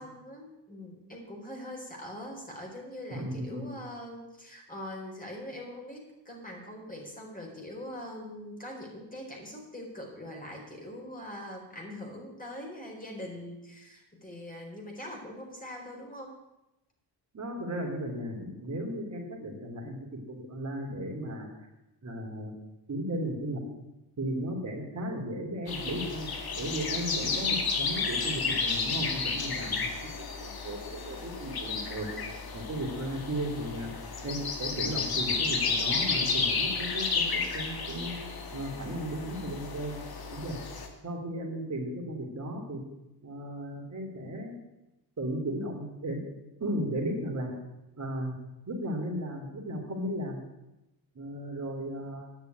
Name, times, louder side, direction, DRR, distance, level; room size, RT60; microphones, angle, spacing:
voice 1, 0.0-16.4 31.0-31.3, left 1 dB, 20° left, -1 dB, 4.4 m, -42 dB
voice 2, 3.1-3.6 17.3-21.5 22.0-22.5 22.9-23.6 24.2-26.3 26.6-29.9 30.2-32.1 32.5-33.9 34.2-38.2 38.5-40.0 40.3-40.5 41.0-42.8 43.2-44.5 45.2-46.2 46.6-47.5 48.0-48.3 48.7-50.4 51.1-52.3, right 1 dB, 40° right, 0 dB, 3.1 m, -35 dB
sound 1, 25.7-40.9, left 4 dB, 50° left, 2.0 m, -32 dB
10.0 x 6.7 x 9.1 m, 0.95 s
cardioid pair, 70°, 45 cm